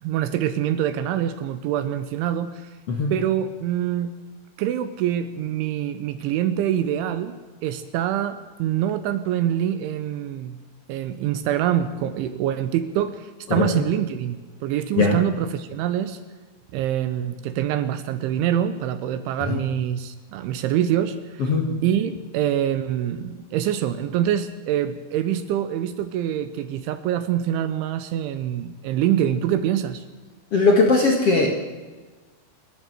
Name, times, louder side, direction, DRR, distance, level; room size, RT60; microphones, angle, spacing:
voice 1, 0.0-2.7 3.1-4.1 4.6-7.4 7.6-10.6 10.9-16.2 16.7-21.5 21.8-30.0, right 10 dB, 75° right, 11 dB, 3.1 m, -25 dB
voice 2, 30.5-31.5, left 3 dB, 65° left, 1 dB, 1.5 m, -19 dB
27.5 x 12.0 x 8.0 m, 1.3 s
omnidirectional pair, 5.8 m